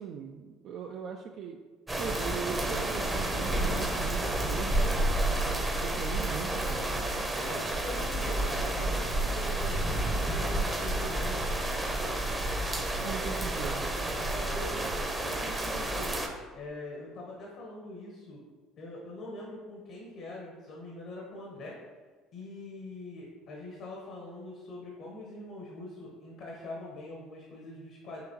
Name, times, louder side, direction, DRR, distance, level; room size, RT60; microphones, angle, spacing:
voice 1, 0.0-1.6 2.0-6.8 13.0-13.9, right 6 dB, 60° right, 3 dB, 0.3 m, -40 dB
sound 1, 1.9-16.3, right 1 dB, 15° right, 0.6 m, -30 dB
voice 2, 7.4-11.8 12.9-13.4 14.2-16.1 16.5-18.4 18.8-21.8 22.3-28.2, left 2 dB, 65° left, -2 dB, 0.9 m, -43 dB
5.7 x 2.9 x 2.9 m, 1.4 s
supercardioid pair, 85°, 0 cm